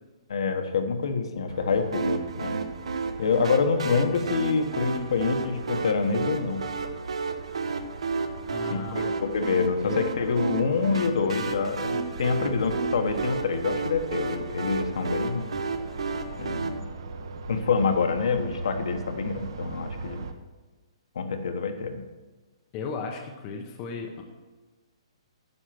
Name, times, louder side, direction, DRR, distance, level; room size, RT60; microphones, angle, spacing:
voice 1, 0.3-2.6 3.2-6.7 8.7-15.5 16.4-16.9 17.5-20.3 21.1-22.0, left 5 dB, 60° left, 6 dB, 1.2 m, -26 dB
sound 1, 1.5-20.3, right 3 dB, 45° right, 0.8 m, -41 dB
sound 2, 1.9-16.7, right 4 dB, 80° right, 1.0 m, -32 dB
voice 2, 8.5-9.2 9.8-10.0 22.7-24.2, left 4 dB, 20° left, 2 dB, 0.6 m, -35 dB
9.9 x 6.3 x 5.9 m, 1.3 s
hypercardioid pair, 180°, 3 cm